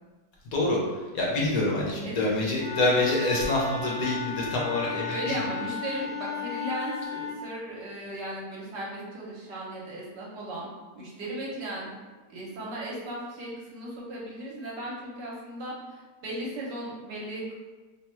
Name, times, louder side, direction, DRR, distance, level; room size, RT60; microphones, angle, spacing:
voice 1, 0.5-5.5, left 2 dB, 65° left, -4 dB, 1.1 m, -26 dB
Wind instrument woodwind instrument, 2.6-7.4, left 5 dB, 5° left, 0.5 m, -35 dB
voice 2, 5.1-10.7 10.9-11.9 12.3-17.6, right 1 dB, 75° right, -5 dB, 1.4 m, -36 dB
3.1 x 2.2 x 4.3 m, 1.3 s
omnidirectional pair, 1.9 m